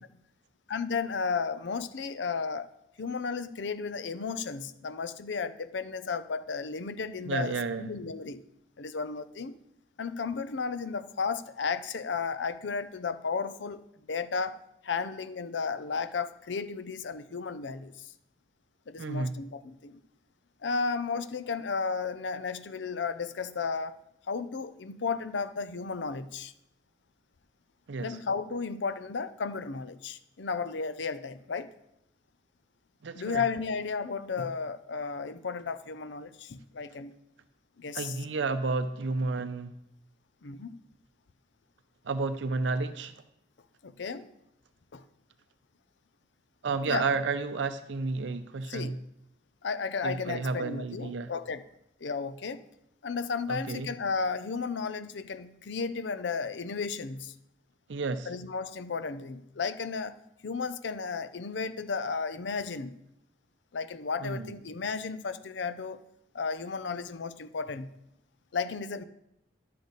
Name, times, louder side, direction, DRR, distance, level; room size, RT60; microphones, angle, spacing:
voice 1, 0.7-2.7 3.0-8.4 8.8-9.6 10.0-13.8 14.1-14.6 14.8-18.1 18.9-20.0 20.6-24.0 24.3-26.5 28.0-31.7 33.1-37.2 37.8-38.2 40.4-40.8 43.8-44.3 44.9-45.0 46.9-47.0 48.7-49.0 49.6-51.6 52.0-52.7 53.0-57.3 58.3-60.2 60.4-63.0 63.7-66.0 66.3-67.9 68.5-69.0, left 5 dB, 80° left, 0.6 m, -34 dB
voice 2, 7.3-7.9 19.0-19.4 27.9-28.2 33.0-33.4 37.9-39.7 42.0-43.1 46.6-49.0 50.0-51.3 53.5-53.9 57.9-58.3 64.2-64.5, right 4 dB, 80° right, 0.5 m, -31 dB
12.0 x 6.7 x 4.0 m
head